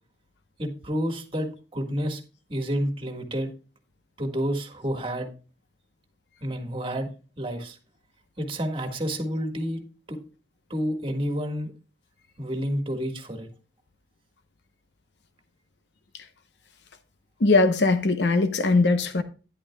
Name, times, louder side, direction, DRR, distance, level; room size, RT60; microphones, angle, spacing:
voice 1, 0.6-2.2 2.5-3.5 4.2-5.3 6.4-7.1 7.4-7.8 8.4-9.8 10.1-10.2 10.7-11.7 12.4-13.5, equal, 30° right, 1.7 m, -29 dB
voice 2, 17.4-19.2, left 3 dB, 80° left, 0.8 m, -20 dB
11.5 x 10.5 x 2.3 m
head